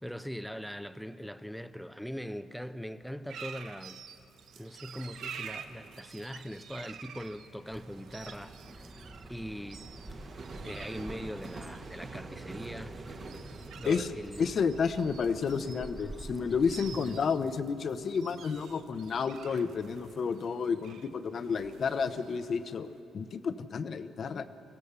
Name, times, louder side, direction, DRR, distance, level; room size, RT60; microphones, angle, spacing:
voice 1, 0.0-4.0 4.6-8.9 9.3-9.9 10.6-12.9 13.7-14.5, equal, ahead, 0.8 m, -41 dB
sound 1, 3.3-23.0, right 7 dB, 75° right, 1.1 m, -49 dB
sound 2, 3.9-20.2, right 3 dB, 45° right, 1.9 m, -50 dB
Bird, 7.7-17.4, right 1 dB, 15° right, 1.2 m, -48 dB
voice 2, 14.4-24.5, left 5 dB, 50° left, 0.9 m, -31 dB
25.0 x 16.0 x 6.9 m
cardioid pair, 90°, 0 cm